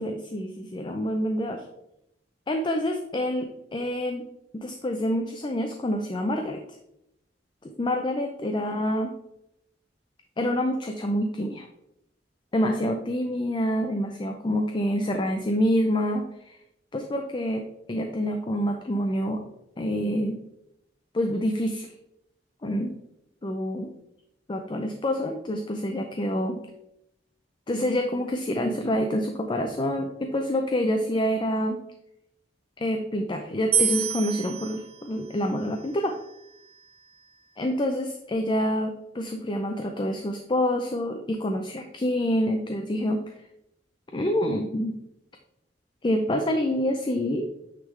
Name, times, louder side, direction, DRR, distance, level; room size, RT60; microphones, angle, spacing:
voice 1, 0.0-1.6 2.5-4.3 4.5-6.6 7.6-9.1 10.4-11.7 12.5-16.6 16.9-17.6 17.9-19.4 19.8-20.4 21.1-21.9 22.6-22.9 23.4-23.9 24.5-26.7 27.7-31.8 32.8-36.1 37.6-43.2 44.1-44.9 46.0-47.5, equal, 25° left, 4 dB, 0.5 m, -27 dB
sound 1, 33.7-37.0, right 7 dB, 35° right, 0.4 m, -30 dB
9.1 x 3.6 x 3.2 m, 0.83 s
head